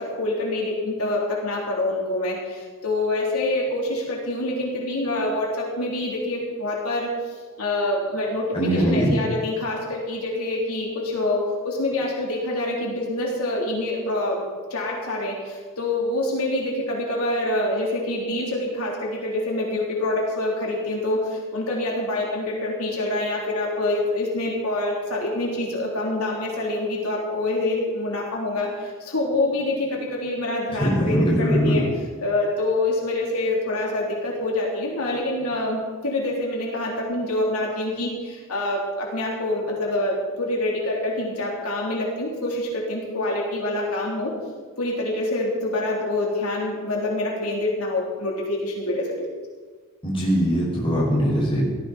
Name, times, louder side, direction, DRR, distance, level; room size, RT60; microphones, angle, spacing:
voice 1, 0.0-7.1 7.6-14.4 14.7-31.8 32.2-44.3 44.8-49.3, left 2 dB, 90° left, -3 dB, 3.4 m, -26 dB
voice 2, 8.5-9.2 30.7-31.8 50.0-51.6, equal, 25° left, -4 dB, 5.1 m, -21 dB
17.5 x 14.0 x 4.3 m, 1.4 s
head